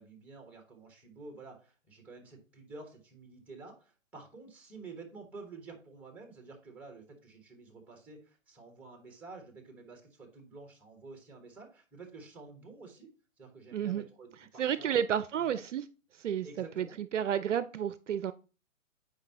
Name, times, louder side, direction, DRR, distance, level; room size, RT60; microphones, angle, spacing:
voice 1, 0.0-13.1 13.4-15.0 15.3-15.6 16.4-17.0, right 3 dB, 5° right, 4 dB, 1.3 m, -50 dB
voice 2, 13.7-14.0 14.6-15.8 16.2-18.3, right 9 dB, 65° right, 14 dB, 0.5 m, -31 dB
8.8 x 4.8 x 2.9 m, 0.34 s
hypercardioid pair, 140°, 40 cm